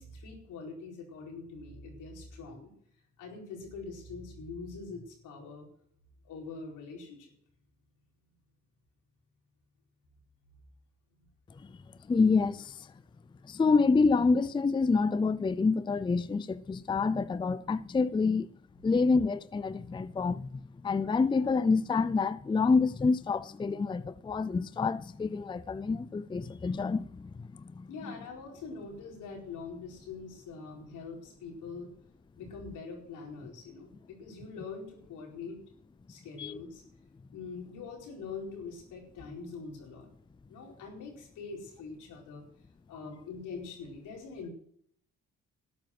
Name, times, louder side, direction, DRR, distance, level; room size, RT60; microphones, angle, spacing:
voice 1, 0.0-2.7 3.2-5.7 6.2-7.3 27.9-31.9 32.4-35.6 36.1-36.8 37.3-40.1 40.5-42.4 42.9-44.5, left 4 dB, 85° left, 4.6 m, -43 dB
voice 2, 12.1-12.9 13.4-18.5 18.8-27.9 36.4-36.6, left 4 dB, 15° left, 0.4 m, -27 dB
12.5 x 9.6 x 6.0 m
cardioid pair, 90°, 30 cm